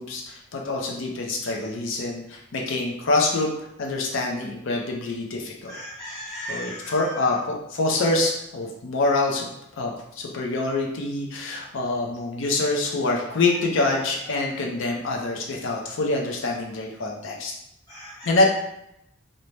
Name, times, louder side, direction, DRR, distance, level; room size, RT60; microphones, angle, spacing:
voice 1, 0.0-3.5 3.8-5.7 6.5-9.5 9.8-17.5 18.2-18.5, left 2 dB, 70° left, 0 dB, 0.5 m, -25 dB
voice 2, 5.7-7.2 17.9-18.3, equal, 20° left, -10 dB, 0.9 m, -37 dB
2.6 x 2.1 x 3.1 m, 0.80 s
head